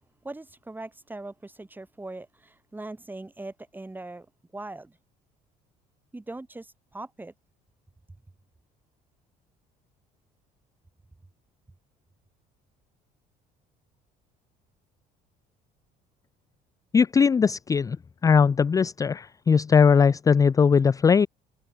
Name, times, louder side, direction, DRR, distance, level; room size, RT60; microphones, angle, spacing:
voice 1, 0.2-4.3 4.5-5.0 6.1-7.3, right 2 dB, 10° right, 2.1 m, -40 dB
voice 2, 16.9-18.0 18.2-21.3, left 6 dB, 20° left, 0.4 m, -19 dB
open air
cardioid pair, 105°, 18 cm